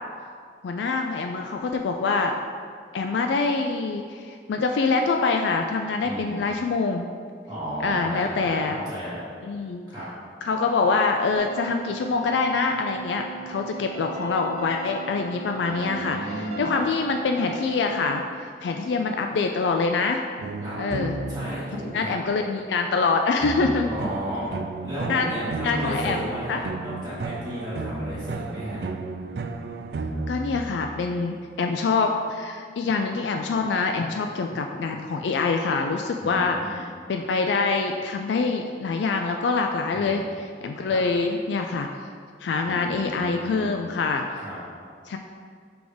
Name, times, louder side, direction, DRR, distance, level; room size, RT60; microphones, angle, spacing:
voice 1, 0.6-2.3 2.9-7.1 7.8-8.8 9.4-9.8 10.4-20.5 20.8-21.2 21.7-23.9 25.1-25.3 25.6-26.2 26.5-26.6 30.3-41.9 42.4-44.2 45.1-45.2, left 4 dB, 80° left, 4 dB, 0.3 m, -25 dB
voice 2, 6.0-6.4 7.5-9.2 9.9-10.1 15.6-16.8 20.6-20.8 21.3-22.1 23.8-28.8 36.2-36.8 39.9-40.2 40.9-41.0 42.6-43.7 44.4-44.6, equal, 20° right, -13 dB, 1.5 m, -34 dB
sound 1, 11.4-18.2, right 4 dB, 35° right, 0.9 m, -38 dB
sound 2, 20.4-22.0 23.4-31.2, right 3 dB, 65° right, 0.3 m, -33 dB
6.1 x 3.5 x 4.9 m, 2.1 s
head